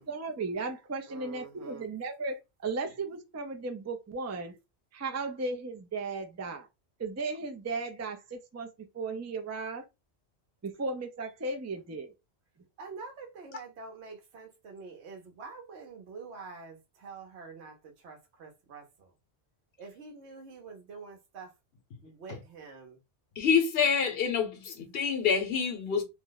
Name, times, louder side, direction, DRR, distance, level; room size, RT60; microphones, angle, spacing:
voice 1, 0.0-4.6 4.9-6.7 7.0-8.7 8.9-9.8 10.6-12.1, right 3 dB, 25° right, 0.3 m, -35 dB
voice 2, 1.1-1.9 12.8-19.1 19.8-21.5 22.0-23.0, right 4 dB, 80° right, 1.0 m, -46 dB
voice 3, 23.4-26.0, left 6 dB, 65° left, 1.0 m, -27 dB
2.6 x 2.1 x 3.8 m
omnidirectional pair, 1.1 m